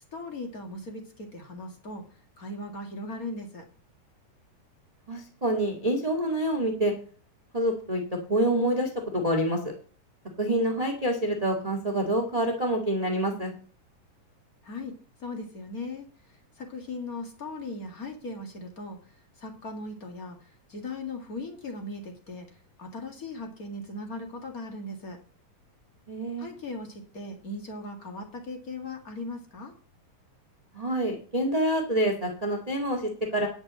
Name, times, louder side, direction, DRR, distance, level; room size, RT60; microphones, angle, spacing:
voice 1, 0.1-2.1 2.4-3.7 14.6-25.2 26.4-29.7, left 2 dB, 35° left, 3 dB, 1.6 m, -38 dB
voice 2, 5.1-6.9 7.5-8.0 8.3-9.6 10.4-13.5 26.1-26.5 30.7-33.5, right 1 dB, 20° right, 3 dB, 1.1 m, -27 dB
10.5 x 6.1 x 7.5 m, 0.43 s
omnidirectional pair, 4.1 m